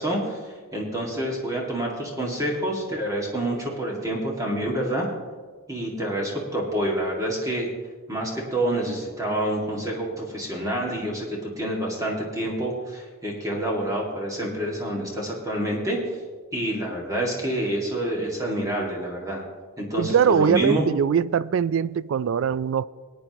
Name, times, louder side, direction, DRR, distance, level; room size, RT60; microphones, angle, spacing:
voice 1, 0.0-5.1 5.7-7.7 8.1-16.0 16.5-19.4 19.8-20.8, right 1 dB, 15° right, 2.0 m, -27 dB
voice 2, 20.0-22.9, right 7 dB, 60° right, 0.3 m, -22 dB
20.0 x 9.5 x 3.0 m
head